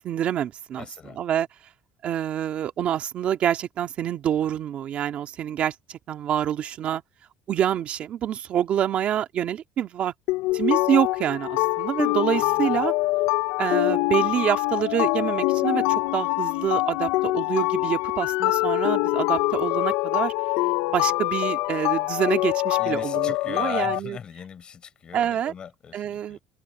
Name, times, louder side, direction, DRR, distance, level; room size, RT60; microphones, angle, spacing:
voice 1, 0.0-0.8 1.2-1.5 2.0-7.0 7.5-10.1 10.5-12.9 13.6-20.3 20.9-24.2 25.1-25.5 25.9-26.4, right 10 dB, 40° right, 1.9 m, -26 dB
voice 2, 0.7-1.2 12.3-12.9 22.8-26.4, left 7 dB, 30° left, 5.2 m, -40 dB
sound 1, 10.3-24.0, left 20 dB, 85° left, 0.5 m, -24 dB
cardioid pair, 160°, 3 cm